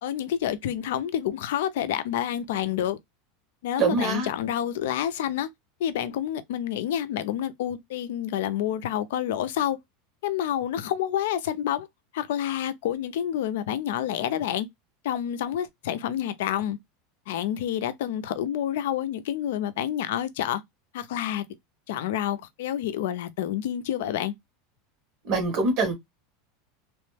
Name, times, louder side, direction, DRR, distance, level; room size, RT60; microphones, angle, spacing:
voice 1, 0.0-3.0 3.6-5.5 5.8-9.8 10.2-11.9 12.1-14.7 15.0-16.8 17.3-20.6 20.9-21.4 21.9-24.3, left 10 dB, 70° left, 0.5 m, -28 dB
voice 2, 3.8-4.3 25.2-25.9, right 3 dB, 40° right, 1.5 m, -24 dB
3.0 x 2.1 x 3.2 m
supercardioid pair, 175°, 0 cm